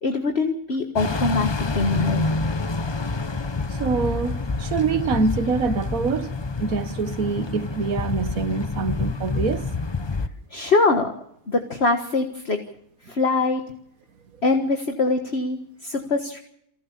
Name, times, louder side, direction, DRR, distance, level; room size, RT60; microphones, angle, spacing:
voice 1, 0.0-2.3 10.5-11.1 11.5-12.6 13.0-13.6 14.4-16.4, left 3 dB, 50° left, 1.8 m, -23 dB
sound 1, 1.0-10.3, left 3 dB, 25° left, 0.7 m, -27 dB
voice 2, 3.8-6.4 6.6-9.7, right 4 dB, 80° right, 1.7 m, -25 dB
29.0 x 13.0 x 7.2 m
omnidirectional pair, 1.5 m